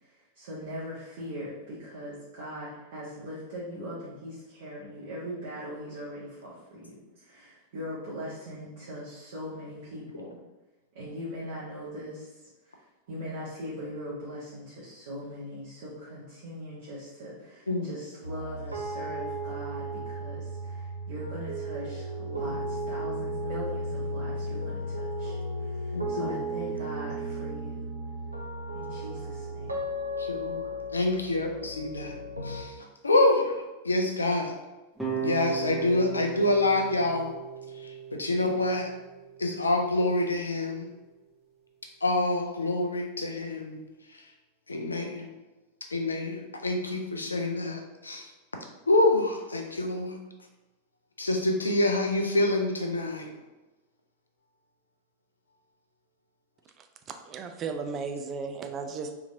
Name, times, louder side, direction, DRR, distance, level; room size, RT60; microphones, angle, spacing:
voice 1, 0.0-10.4 10.9-27.8 28.7-29.8, equal, 55° right, -8 dB, 0.9 m, -40 dB
sound 1, 18.2-32.6, right 1 dB, 80° right, 0.5 m, -35 dB
voice 2, 25.9-26.4 30.2-32.2 32.4-33.6 33.8-34.5 35.2-37.3 37.8-38.9 39.4-40.9 42.0-43.8 44.1-44.3 44.7-45.3 45.9-48.3 48.9-50.2 51.2-53.3, left 2 dB, 75° left, 3 dB, 0.5 m, -27 dB
sound 2, 35.0-40.1, right 6 dB, 5° right, 0.7 m, -37 dB
voice 3, 57.2-59.1, right 5 dB, 30° right, 5 dB, 0.3 m, -35 dB
3.7 x 2.9 x 2.6 m, 1.1 s
figure-of-eight pair, 90°, 0 cm